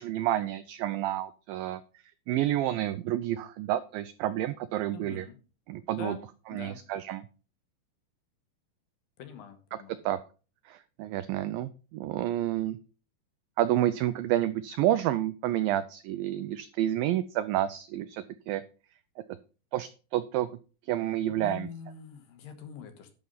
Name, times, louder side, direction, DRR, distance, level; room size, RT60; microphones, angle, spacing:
voice 1, 0.0-1.8 2.3-5.3 5.7-6.2 6.5-7.3 10.0-10.2 10.7-12.8 13.6-18.6 19.7-20.5 20.8-21.7, right 13 dB, 90° right, 13 dB, 2.0 m, -29 dB
voice 2, 4.9-5.4 5.9-6.2 6.5-6.8 9.2-10.0 21.3-23.1, left 6 dB, 65° left, 8 dB, 2.9 m, -43 dB
11.5 x 6.0 x 5.5 m, 0.36 s
omnidirectional pair, 4.7 m